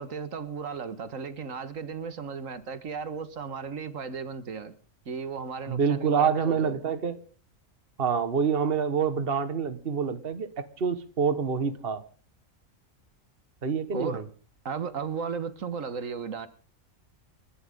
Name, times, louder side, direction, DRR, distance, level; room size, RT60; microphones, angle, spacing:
voice 1, 0.0-4.7 5.1-6.8 13.9-14.2 14.7-16.5, right 5 dB, 85° right, 1.8 m, -35 dB
voice 2, 5.7-7.2 8.0-12.0 13.6-14.3, right 6 dB, 50° right, 1.6 m, -27 dB
29.5 x 12.0 x 3.7 m
omnidirectional pair, 1.3 m